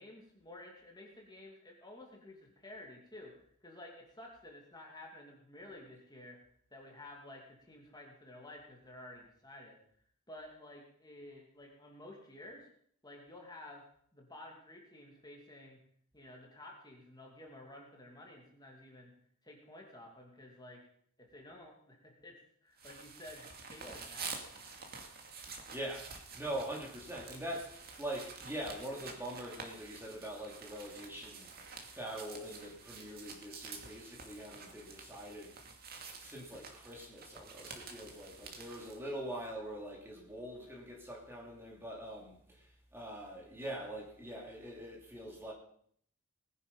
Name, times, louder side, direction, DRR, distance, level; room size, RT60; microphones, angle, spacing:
voice 1, 0.0-6.4 6.7-9.8 10.3-12.7 13.0-13.8 14.1-15.8 16.1-19.1 19.4-20.8 21.2-24.6, left 1 dB, 20° left, 2.6 m, -52 dB
sound 1, 22.8-39.0, right 5 dB, 45° right, 2.4 m, -49 dB
voice 2, 25.7-31.5 32.0-35.6 36.2-45.5, right 1 dB, 10° right, 2.8 m, -43 dB
20.0 x 10.5 x 5.4 m
head